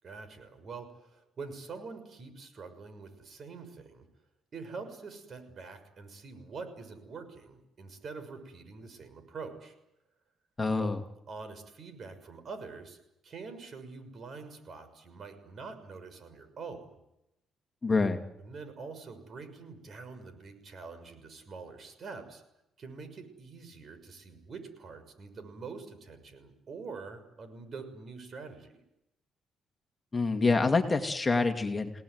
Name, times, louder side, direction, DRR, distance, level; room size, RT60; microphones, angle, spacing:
voice 1, 0.0-4.0 4.5-9.7 10.7-10.9 11.3-13.0 13.2-16.9 18.4-22.4 22.8-28.8, right 4 dB, 50° right, 10 dB, 6.3 m, -45 dB
voice 2, 10.6-11.0 17.8-18.2 30.1-31.9, left 3 dB, 25° left, 5 dB, 2.4 m, -26 dB
29.0 x 18.5 x 9.6 m, 0.87 s
cardioid pair, 90°, 0 cm